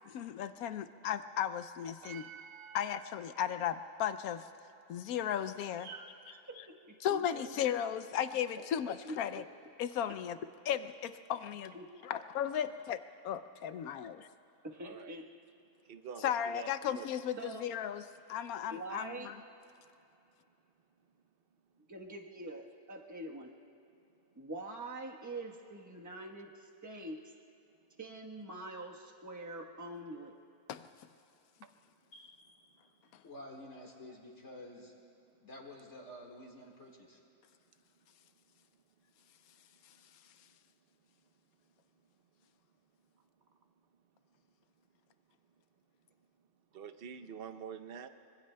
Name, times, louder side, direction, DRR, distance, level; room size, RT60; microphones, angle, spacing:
voice 1, 0.1-2.3 2.7-4.5 4.9-5.9 7.0-9.4 9.8-10.4 10.7-11.7 12.0-14.3 16.2-18.0 18.3-19.4 30.7-30.9, left 9 dB, 75° left, 11 dB, 1.0 m, -35 dB
voice 2, 2.0-3.1 14.8-15.2 15.8-16.7 16.9-17.1 31.6-31.7 39.9-40.0 46.7-48.1, right 7 dB, 50° right, 9 dB, 0.7 m, -47 dB
voice 3, 5.8-7.5 9.0-9.4 11.7-11.9 13.9-14.0 14.6-15.3 17.4-17.7 18.6-19.3 21.9-23.5 24.3-27.4 28.0-30.3, right 2 dB, 15° right, 0 dB, 1.0 m, -45 dB
voice 4, 32.1-32.8 33.2-35.0 35.4-37.2, left 1 dB, 50° left, -1 dB, 2.1 m, -50 dB
25.5 x 24.0 x 2.2 m, 2.8 s
omnidirectional pair, 1.6 m